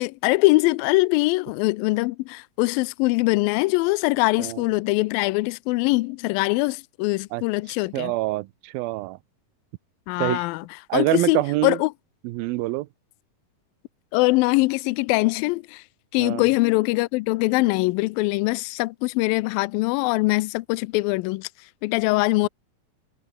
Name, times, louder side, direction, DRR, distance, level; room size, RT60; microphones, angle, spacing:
voice 1, 0.0-8.1 10.1-10.6 10.9-11.9 14.1-15.8 16.1-21.5 21.8-22.5, left 23 dB, 80° left, 2.2 m, -22 dB
voice 2, 7.9-9.2 10.2-10.5 10.9-11.8 12.2-12.9 16.2-16.5, right 19 dB, 85° right, 2.5 m, -25 dB
omnidirectional pair, 4.2 m